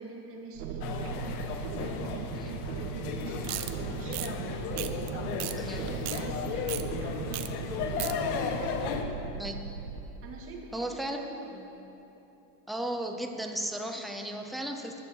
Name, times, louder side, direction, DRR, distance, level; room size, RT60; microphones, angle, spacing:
voice 1, 0.0-9.1 10.2-11.8, right 3 dB, 30° right, 0 dB, 2.2 m, -45 dB
sound 1, 0.5-10.0, right 6 dB, 70° right, 1.4 m, -38 dB
sound 2, 0.8-9.0, left 6 dB, 65° left, 1.5 m, -35 dB
Ratchet Wrench Fast Multiple, 3.4-3.7 4.1-4.3 4.8-5.1 5.4-5.5 5.9-6.2 6.7-6.8 7.3-7.5 7.7-8.1, right 17 dB, 50° right, 0.9 m, -35 dB
voice 2, 10.7-11.2 12.7-15.0, right 1 dB, ahead, 3 dB, 0.4 m, -35 dB
16.0 x 11.0 x 7.3 m, 3.0 s
cardioid pair, 160°, 47 cm